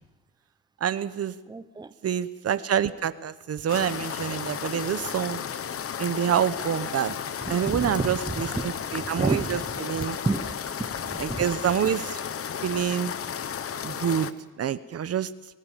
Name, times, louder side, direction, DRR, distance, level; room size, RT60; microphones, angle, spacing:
voice 1, 0.8-1.3 2.0-5.4 6.0-7.1 7.5-10.2 11.2-12.2 12.6-13.1 13.8-14.3 14.6-15.3, right 9 dB, 55° right, 14 dB, 1.0 m, -27 dB
voice 2, 1.5-1.9 7.4-8.7 9.2-9.7 10.0-11.5, right 3 dB, 15° right, 13 dB, 0.9 m, -31 dB
sound 1, 3.7-14.3, left 8 dB, 50° left, 1.1 m, -33 dB
26.5 x 18.0 x 7.4 m, 1.1 s
cardioid pair, 90°, 30 cm